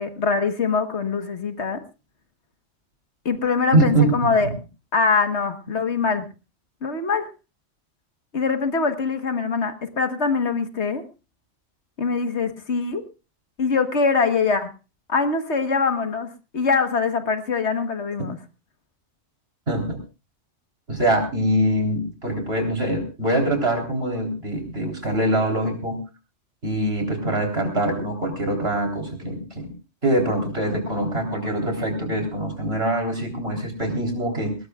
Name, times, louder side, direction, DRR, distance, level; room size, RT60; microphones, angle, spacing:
voice 1, 0.0-1.8 3.2-4.5 4.9-6.2 6.8-7.3 8.3-11.0 12.0-13.0 13.6-14.7 15.1-18.4, left 4 dB, 60° left, 8 dB, 1.6 m, -23 dB
voice 2, 3.7-4.1 4.4-4.5 19.7-20.0 20.9-26.0 26.6-29.7 30.0-34.6, right 1 dB, 55° right, 3 dB, 4.2 m, -23 dB
20.0 x 19.5 x 2.4 m, 0.30 s
omnidirectional pair, 1.3 m